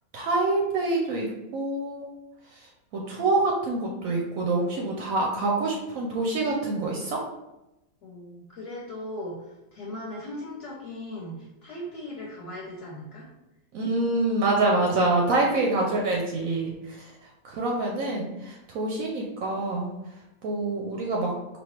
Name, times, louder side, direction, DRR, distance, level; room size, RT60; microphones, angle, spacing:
voice 1, 0.1-2.1 2.9-7.2 13.7-16.7 17.4-19.9 20.4-21.3, right 2 dB, 70° right, -1 dB, 1.0 m, -26 dB
voice 2, 8.0-9.4 9.7-13.3, left 1 dB, 55° left, -4 dB, 1.2 m, -38 dB
4.4 x 2.9 x 3.1 m, 0.94 s
omnidirectional pair, 1.5 m